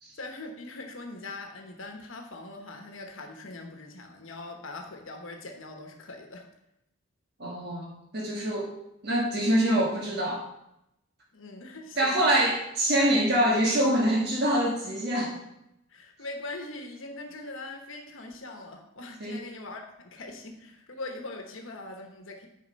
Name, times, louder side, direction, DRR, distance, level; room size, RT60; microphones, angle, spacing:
voice 1, 0.2-6.5 11.3-12.2 15.9-22.5, left 2 dB, 80° left, 4 dB, 1.1 m, -41 dB
voice 2, 7.4-8.7 9.0-10.4 12.0-15.3 19.2-19.4, right 1 dB, 55° right, -3 dB, 1.5 m, -25 dB
9.4 x 5.0 x 5.3 m, 0.83 s
head